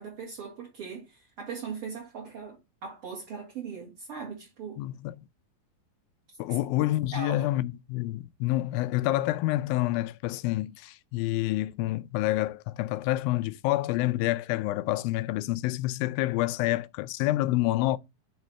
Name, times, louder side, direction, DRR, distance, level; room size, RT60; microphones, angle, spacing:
voice 1, 0.0-4.8 6.3-6.6 7.1-7.5, right 5 dB, 40° right, 2.6 m, -39 dB
voice 2, 4.8-5.1 6.4-18.0, left 16 dB, 90° left, 2.4 m, -28 dB
11.5 x 4.0 x 3.2 m
omnidirectional pair, 4.1 m